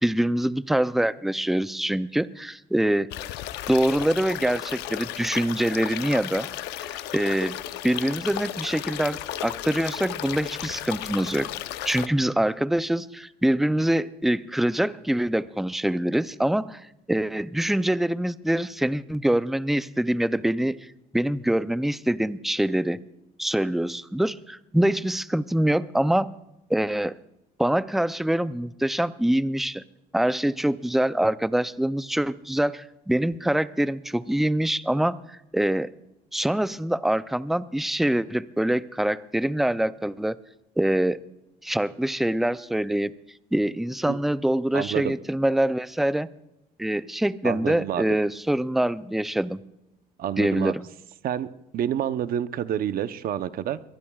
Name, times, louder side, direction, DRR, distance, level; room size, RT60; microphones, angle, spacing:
voice 1, 0.0-3.1 3.7-6.5 6.8-7.6 7.8-11.5 11.8-20.8 21.1-23.0 23.4-26.3 26.7-27.2 27.6-29.8 30.1-35.9 36.3-40.4 40.8-41.2 41.6-43.1 43.5-46.3 46.8-49.6 50.4-50.9, right 1 dB, ahead, 14 dB, 0.4 m, -24 dB
sound 1, 3.1-12.1, left 13 dB, 85° left, 0.7 m, -34 dB
voice 2, 44.7-45.1 47.4-48.0 50.2-50.7 51.2-51.5 51.7-53.9, right 10 dB, 60° right, 12 dB, 0.8 m, -28 dB
23.5 x 18.5 x 2.4 m, 0.89 s
cardioid pair, 110°, 17 cm